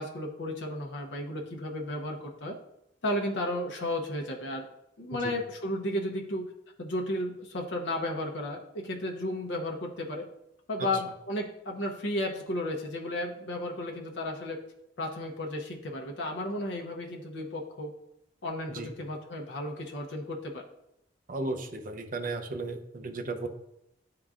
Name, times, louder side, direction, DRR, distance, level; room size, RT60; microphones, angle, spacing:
voice 1, 0.0-2.6 3.0-4.7 5.0-6.5 6.8-10.3 10.7-14.6 15.0-17.9 18.4-20.6, left 1 dB, 85° left, 1 dB, 0.7 m, -33 dB
voice 2, 21.3-23.5, right 3 dB, 45° right, 5 dB, 0.6 m, -35 dB
10.0 x 3.8 x 2.4 m, 0.83 s
head